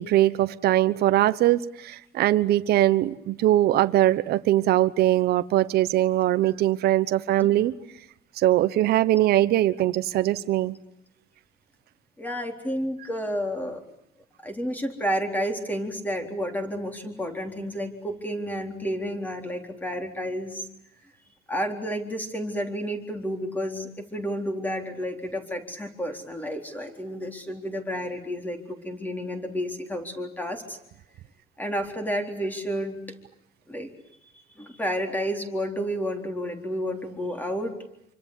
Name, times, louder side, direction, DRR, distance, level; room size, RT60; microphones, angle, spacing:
voice 1, 0.0-7.7 8.4-10.8, right 14 dB, 60° right, 12 dB, 1.1 m, -21 dB
voice 2, 12.2-13.8 14.4-20.7 21.5-30.8 31.6-33.0 33.7-33.9 34.3-37.7, equal, 10° left, 5 dB, 4.0 m, -31 dB
27.0 x 25.0 x 8.5 m, 0.77 s
cardioid pair, 155°, 18 cm